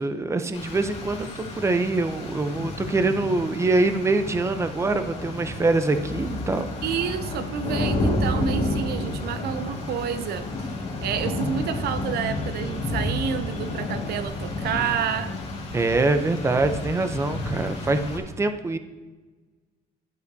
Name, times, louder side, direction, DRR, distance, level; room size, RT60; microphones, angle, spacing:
voice 1, 0.0-6.7 15.7-18.8, right 2 dB, 15° right, 0.7 m, -24 dB
Rain, 0.5-18.2, left 2 dB, 40° left, 2.3 m, -31 dB
voice 2, 6.8-10.7 11.0-15.4, right 8 dB, 70° right, 0.6 m, -29 dB
11.0 x 11.0 x 2.8 m
cardioid pair, 110°, 17 cm